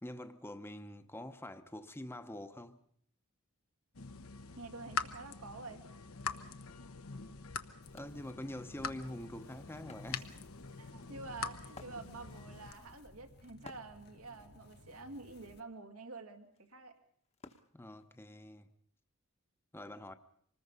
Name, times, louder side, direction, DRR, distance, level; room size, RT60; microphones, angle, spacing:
voice 1, 0.0-2.8 7.9-10.3 17.7-18.7 19.7-20.1, left 1 dB, 10° left, 0.9 m, -45 dB
sound 1, 3.9-12.7, left 5 dB, 80° left, 1.1 m, -44 dB
voice 2, 4.6-5.8 10.7-17.0, right 3 dB, 85° right, 2.3 m, -48 dB
sound 2, 7.8-15.6, left 2 dB, 50° left, 1.3 m, -60 dB
Wood, 7.9-18.6, left 3 dB, 30° left, 1.1 m, -60 dB
25.5 x 20.0 x 5.5 m
head